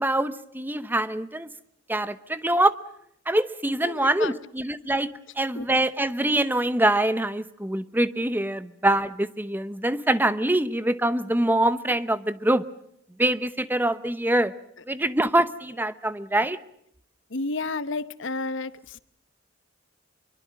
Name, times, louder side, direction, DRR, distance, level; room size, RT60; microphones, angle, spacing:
voice 1, 0.0-1.5 1.9-2.7 3.3-12.6 13.2-14.5 14.9-16.6, right 1 dB, 10° right, 13 dB, 0.9 m, -24 dB
voice 2, 3.8-4.4 5.5-5.7 17.3-19.0, left 3 dB, 70° left, 14 dB, 0.9 m, -31 dB
25.0 x 23.5 x 6.5 m, 0.74 s
head